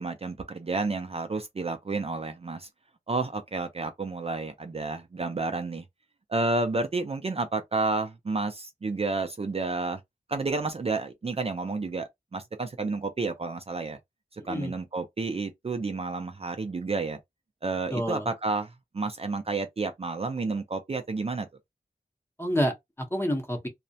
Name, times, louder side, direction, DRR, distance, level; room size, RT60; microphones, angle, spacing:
voice 1, 0.0-2.7 3.1-5.8 6.3-10.0 10.3-14.0 14.3-17.2 17.6-21.5, right 3 dB, 40° right, 0.4 m, -30 dB
voice 2, 14.4-14.7 17.9-18.3 22.4-23.7, equal, 15° left, 0.7 m, -28 dB
2.4 x 2.1 x 2.6 m
wide cardioid pair, 75°, 16 cm